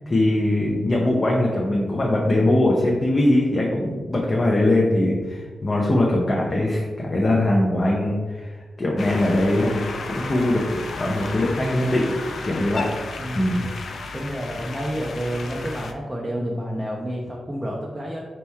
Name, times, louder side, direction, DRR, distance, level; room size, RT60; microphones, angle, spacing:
voice 1, 0.1-10.6 10.9-12.2 12.4-12.9 13.3-13.7, left 1 dB, 30° left, -3 dB, 0.6 m, -21 dB
sound 1, 9.0-15.9, left 3 dB, 70° left, 0.4 m, -33 dB
voice 2, 13.2-13.5 14.1-18.3, equal, 10° right, -3 dB, 0.5 m, -30 dB
4.3 x 3.0 x 3.4 m, 1.4 s
wide cardioid pair, 115°, 0 cm